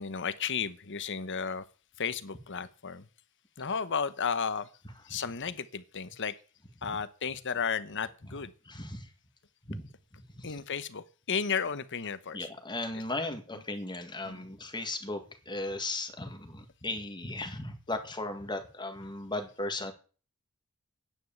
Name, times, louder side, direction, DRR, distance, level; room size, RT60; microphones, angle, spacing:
voice 1, 0.0-1.6 2.0-3.1 3.6-4.7 5.0-6.4 6.8-8.5 10.4-12.5 14.2-14.5, left 6 dB, 55° left, 1.0 m, -33 dB
voice 2, 8.7-9.1 9.7-9.9 10.4-10.5 12.3-15.2 15.5-19.9, left 2 dB, 20° left, 1.9 m, -36 dB
9.7 x 9.6 x 7.2 m
head